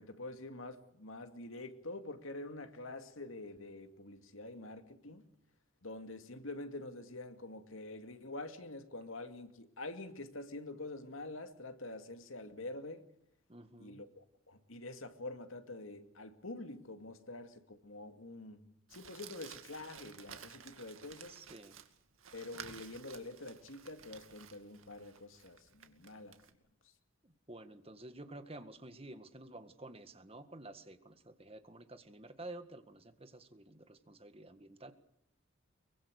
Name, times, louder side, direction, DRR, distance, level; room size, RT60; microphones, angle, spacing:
voice 1, 0.0-5.2 5.8-13.1 13.8-18.6 18.9-21.4 22.3-26.4, left 2 dB, 80° left, 2.4 m, -46 dB
voice 2, 13.5-14.0 21.3-21.8 27.2-34.9, right 2 dB, 30° right, 1.8 m, -51 dB
Crumpling crinkling, 18.9-26.5, right 7 dB, 80° right, 2.3 m, -54 dB
23.5 x 23.5 x 6.6 m
head